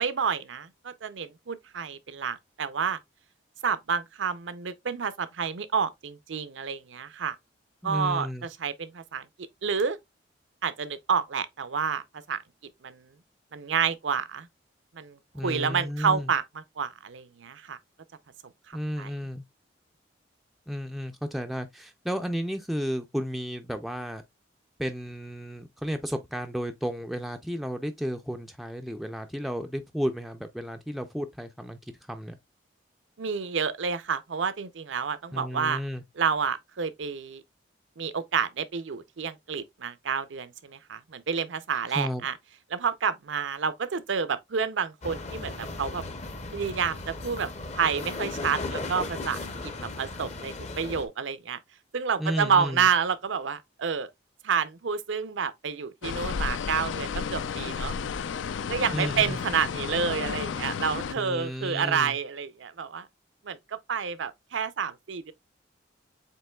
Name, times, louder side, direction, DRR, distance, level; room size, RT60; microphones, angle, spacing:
voice 1, 0.0-3.0 3.6-7.4 7.8-9.3 9.6-10.0 10.6-12.0 12.3-12.4 12.8-13.1 13.5-14.5 14.9-17.8 18.7-19.1 33.2-35.8 36.2-37.4 38.0-42.4 42.7-46.0 46.5-47.5 47.8-51.6 51.9-54.1 54.4-58.0 58.7-63.1 63.4-65.3, right 6 dB, 75° right, 0.6 m, -29 dB
voice 2, 7.8-8.5 15.3-16.3 18.7-19.4 20.7-24.2 24.8-31.8 32.1-32.4 35.3-36.0 41.9-42.3 52.2-52.9 58.9-59.4 61.2-62.2, equal, ahead, 0.3 m, -33 dB
sound 1, 45.0-51.0, left 2 dB, 35° left, 0.6 m, -36 dB
sound 2, 56.0-61.1, left 6 dB, 75° left, 0.4 m, -32 dB
7.5 x 3.0 x 2.2 m
head